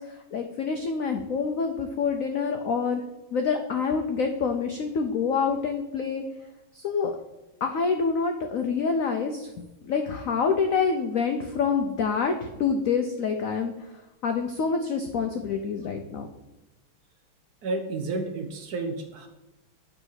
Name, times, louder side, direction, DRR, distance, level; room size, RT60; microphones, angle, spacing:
voice 1, 0.0-3.0 3.3-6.2 6.7-7.1 7.6-12.3 12.6-13.7 14.2-16.3, left 5 dB, 90° left, 5 dB, 0.7 m, -27 dB
voice 2, 17.6-19.3, right 3 dB, 60° right, 6 dB, 1.1 m, -31 dB
8.8 x 4.0 x 6.3 m, 1.0 s
omnidirectional pair, 2.3 m